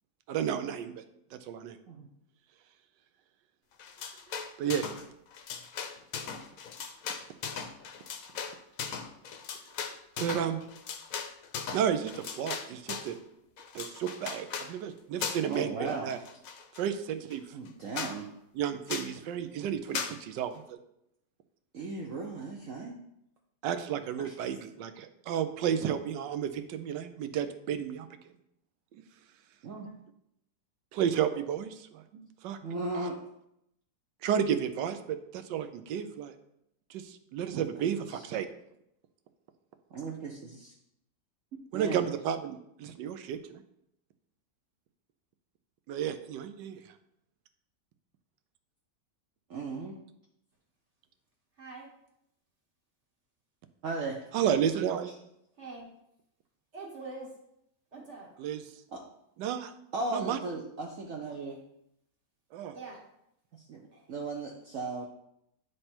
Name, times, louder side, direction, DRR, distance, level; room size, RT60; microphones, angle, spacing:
voice 1, 0.3-0.9 1.3-1.8 4.6-4.9 10.2-10.6 11.7-13.2 13.7-16.2 16.8-17.4 18.6-20.8 23.6-28.1 30.9-32.0 32.4-32.6 32.9-33.1 34.2-36.3 36.9-38.5 41.7-43.6 45.9-46.8 54.3-55.1 58.4-58.6 59.4-59.7 60.1-60.4 62.5-62.7, right 8 dB, 80° right, 9 dB, 1.2 m, -32 dB
sound 1, 3.8-5.1 5.3-13.2 13.6-14.7 15.2-15.6 15.9-16.9 17.3-17.4 17.7-17.8 18.0-18.2 18.9-19.2 19.9-20.2, left 6 dB, 65° left, 0.9 m, -38 dB
voice 2, 15.5-16.1 17.5-18.3 21.7-23.0 24.2-24.5 29.6-29.9 32.1-32.2 32.6-33.2 37.9-38.3 39.9-40.8 41.7-42.0 49.5-50.0 53.8-54.2 58.9-59.0 59.9-61.6 63.5-63.8 64.1-65.1, right 3 dB, 60° right, 0 dB, 0.9 m, -37 dB
voice 3, 51.6-51.9 55.6-55.9 56.7-57.3 57.9-58.3 62.7-63.0 63.9-64.0, right 3 dB, 40° right, -2 dB, 1.6 m, -44 dB
9.8 x 3.3 x 4.3 m, 0.79 s
omnidirectional pair, 1.9 m